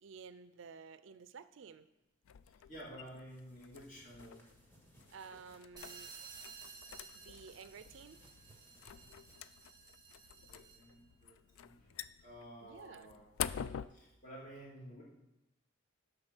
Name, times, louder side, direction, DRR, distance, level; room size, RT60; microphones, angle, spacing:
voice 1, 0.0-1.9 5.1-6.1 7.1-8.2 12.6-13.1, right 5 dB, 65° right, 13 dB, 0.4 m, -52 dB
sound 1, 2.2-13.9, left 9 dB, 80° left, 0.3 m, -48 dB
voice 2, 2.4-4.4 10.4-11.9 12.2-13.3 13.9-15.0, equal, 40° left, -4 dB, 2.6 m, -52 dB
sound 2, 3.1-5.6 6.6-9.8, equal, 10° left, 1.7 m, -66 dB
sound 3, 5.8-11.0, right 5 dB, 20° right, 0.8 m, -55 dB
12.0 x 4.1 x 6.1 m, 0.94 s
head